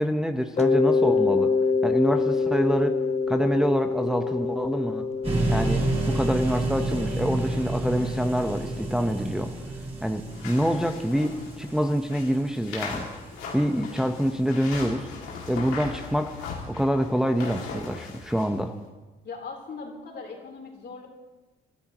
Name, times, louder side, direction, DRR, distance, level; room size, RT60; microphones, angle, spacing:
voice 1, 0.0-1.5 1.8-3.0 3.3-5.1 5.5-9.5 10.0-13.1 13.5-15.1 15.5-16.3 16.7-18.7, equal, 5° right, 5 dB, 1.0 m, -26 dB
Mallet percussion, 0.6-9.2, left 4 dB, 30° left, 0.7 m, -26 dB
sound 1, 5.2-13.3, right 2 dB, 30° right, 4.7 m, -30 dB
sound 2, 10.3-18.6, left 5 dB, 90° left, 2.5 m, -39 dB
voice 2, 19.2-21.1, left 4 dB, 55° left, 0 dB, 3.9 m, -39 dB
25.5 x 12.5 x 3.1 m, 1.2 s
supercardioid pair, 70°, 21 cm